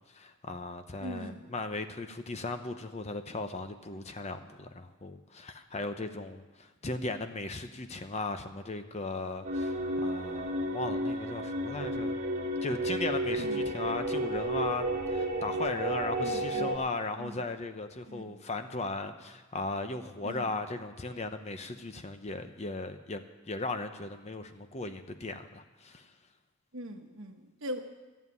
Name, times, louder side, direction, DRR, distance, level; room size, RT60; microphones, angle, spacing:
voice 1, 0.1-12.2 12.6-26.1, left 2 dB, 30° left, 8 dB, 0.7 m, -37 dB
voice 2, 1.0-1.5 13.3-14.0 16.2-16.8 17.2-17.4 18.1-18.5 20.2-20.5 26.7-27.8, equal, 60° right, 5 dB, 1.3 m, -42 dB
evolving drone pad, 9.4-16.8, right 1 dB, 40° right, 2.1 m, -32 dB
13.5 x 7.3 x 9.6 m, 1.2 s
head